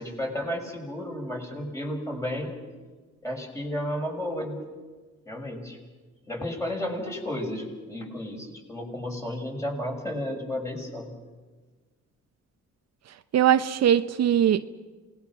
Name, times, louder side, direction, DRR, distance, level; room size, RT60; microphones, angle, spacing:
voice 1, 0.0-2.5 3.2-4.6 5.3-5.8 6.3-11.1, left 1 dB, 10° left, 6.2 m, -32 dB
voice 2, 13.3-14.6, right 10 dB, 60° right, 0.8 m, -20 dB
28.0 x 20.0 x 6.1 m
cardioid pair, 90°, 30 cm